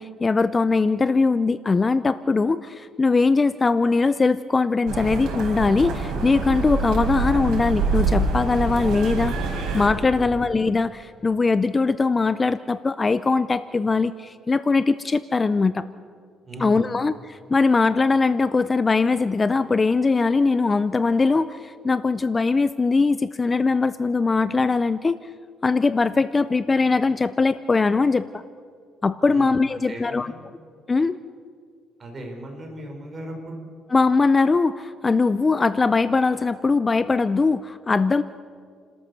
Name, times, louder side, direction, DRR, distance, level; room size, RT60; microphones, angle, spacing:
voice 1, 0.0-9.5 9.7-15.8 16.6-25.2 25.6-28.4 29.0-30.3 30.9-31.2 33.9-38.2, left 4 dB, 20° left, 14 dB, 0.5 m, -21 dB
sound 1, 4.9-9.9, right 3 dB, 80° right, 4.6 m, -25 dB
voice 2, 16.4-17.0 29.3-30.5 32.0-33.6, right 1 dB, 30° right, 2 dB, 4.8 m, -37 dB
29.5 x 13.0 x 7.0 m, 2.2 s
cardioid pair, 120°, 0 cm